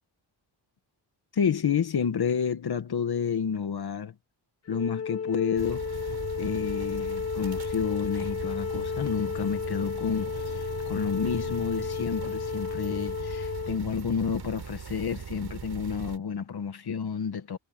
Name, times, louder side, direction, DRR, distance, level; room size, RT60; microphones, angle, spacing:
voice 1, 1.3-4.1 4.7-5.9 6.4-17.6, left 7 dB, 55° left, 1.8 m, -30 dB
Wind instrument woodwind instrument, 4.7-13.8, left 6 dB, 35° left, 0.9 m, -33 dB
sound 1, 5.6-16.2, right 7 dB, 60° right, 7.4 m, -39 dB
wide cardioid pair, 140°, 46 cm